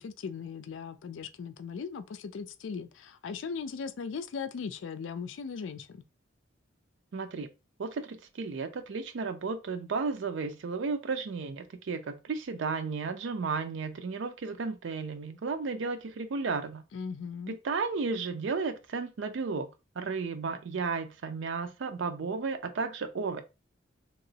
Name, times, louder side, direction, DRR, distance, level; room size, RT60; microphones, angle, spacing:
voice 1, 0.0-6.0 16.9-17.6, left 5 dB, 80° left, 0.4 m, -38 dB
voice 2, 7.1-7.5 7.8-16.8 17.5-19.7 20.0-23.4, right 4 dB, 80° right, 0.4 m, -33 dB
2.9 x 2.9 x 2.7 m
head